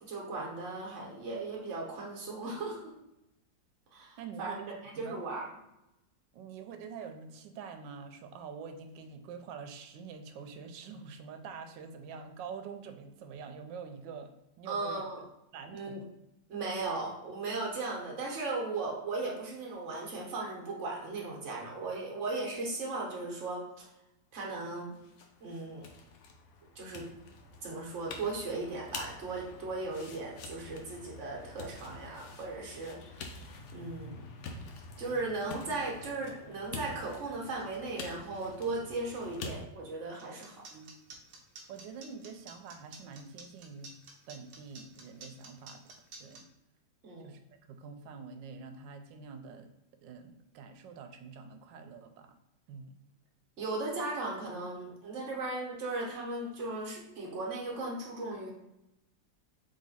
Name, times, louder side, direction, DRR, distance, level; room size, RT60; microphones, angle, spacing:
voice 1, 0.0-2.9 3.9-4.6 4.8-5.5 14.7-15.2 15.7-16.0 16.5-23.9 24.3-25.0 25.4-25.9 26.7-27.1 27.6-33.4 33.7-34.2 35.0-40.6 47.0-47.3 53.6-58.5, right 3 dB, 45° right, -2 dB, 1.3 m, -37 dB
voice 2, 4.2-5.2 6.3-14.3 14.6-15.3 15.5-16.1 31.9-32.0 40.7-40.9 41.7-43.9 44.3-45.8 46.2-46.5 47.2-47.4 47.7-49.7 50.0-52.3 52.7-52.9, right 5 dB, 85° right, 8 dB, 1.3 m, -46 dB
sound 1, 24.6-39.6, left 3 dB, 75° left, 0.6 m, -47 dB
sound 2, 40.2-46.4, right 4 dB, 60° right, 1.0 m, -50 dB
3.7 x 3.3 x 4.1 m, 0.90 s
omnidirectional pair, 1.9 m